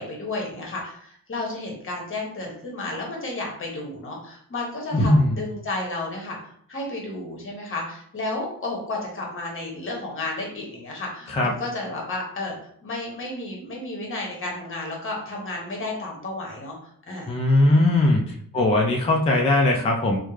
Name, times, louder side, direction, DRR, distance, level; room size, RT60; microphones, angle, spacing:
voice 1, 0.0-12.5 12.8-17.3, left 2 dB, 35° left, -1 dB, 1.0 m, -32 dB
voice 2, 4.9-5.2 11.3-11.5 17.3-18.2 18.5-20.2, left 2 dB, 20° left, -1 dB, 0.3 m, -19 dB
3.5 x 2.1 x 3.1 m, 0.63 s
wide cardioid pair, 155°, 34 cm